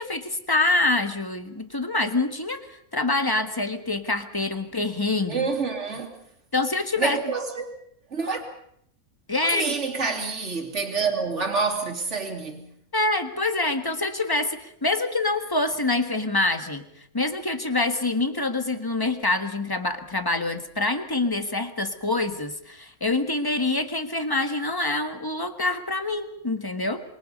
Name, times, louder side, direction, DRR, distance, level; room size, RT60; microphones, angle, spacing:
voice 1, 0.0-2.6 2.9-5.5 6.5-7.2 9.3-9.7 12.9-16.8 17.1-27.0, left 2 dB, 15° left, 1.5 m, -26 dB
voice 2, 5.3-6.1 7.0-7.7 8.1-8.4 9.4-12.7, right 4 dB, 55° right, 3.2 m, -27 dB
27.0 x 23.0 x 5.4 m
omnidirectional pair, 1.5 m